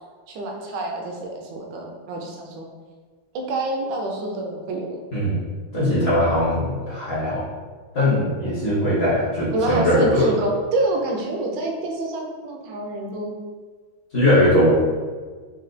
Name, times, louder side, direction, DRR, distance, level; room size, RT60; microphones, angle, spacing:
voice 1, 0.3-2.7 3.3-5.0 9.5-13.3, right 1 dB, 70° right, 1 dB, 1.2 m, -27 dB
voice 2, 5.7-7.4 7.9-10.3 14.1-14.7, left 1 dB, 45° left, -9 dB, 0.8 m, -20 dB
4.2 x 2.3 x 2.5 m, 1.4 s
omnidirectional pair, 2.2 m